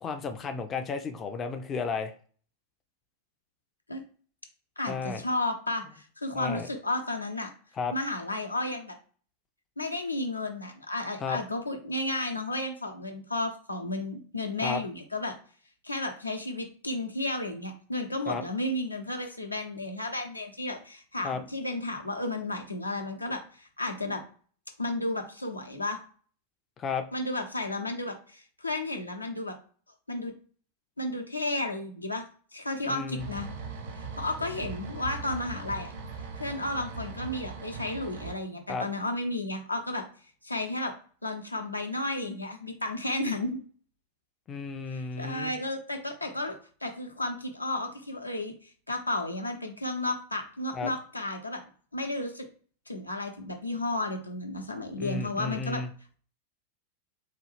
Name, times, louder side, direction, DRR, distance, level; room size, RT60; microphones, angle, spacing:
voice 1, 0.0-2.1 4.9-5.2 6.3-6.7 7.8-7.9 11.2-11.4 14.6-14.8 18.3-18.4 21.2-21.4 26.8-27.0 32.9-33.3 38.7-38.9 44.5-45.5 50.7-50.9 55.0-55.9, left 5 dB, 25° left, 7 dB, 0.4 m, -33 dB
voice 2, 4.8-7.5 7.9-8.9 9.8-15.3 15.8-24.2 24.8-26.0 27.1-29.5 30.1-30.3 31.0-32.2 32.5-33.5 34.0-35.9 36.4-40.0 40.4-40.9 41.2-43.6 44.9-51.6 51.9-52.5 52.9-55.8, left 2 dB, 85° left, 4 dB, 0.7 m, -33 dB
sound 1, 33.2-38.3, right 4 dB, 55° right, 0.7 m, -40 dB
4.0 x 2.3 x 3.2 m, 0.43 s
figure-of-eight pair, 90°, 0 cm